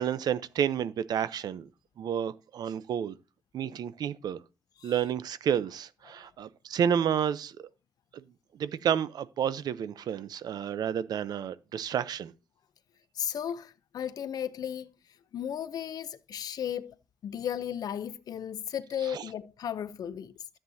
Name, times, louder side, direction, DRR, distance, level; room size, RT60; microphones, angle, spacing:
voice 1, 0.0-1.7 2.0-3.2 3.5-4.4 4.8-7.7 8.1-8.2 8.6-12.3 19.1-19.2, right 8 dB, 80° right, 0.6 m, -30 dB
voice 2, 13.1-14.9 15.3-17.0 17.2-20.3, left 9 dB, 70° left, 0.6 m, -35 dB
13.0 x 7.6 x 2.7 m
wide cardioid pair, 155°, 7 cm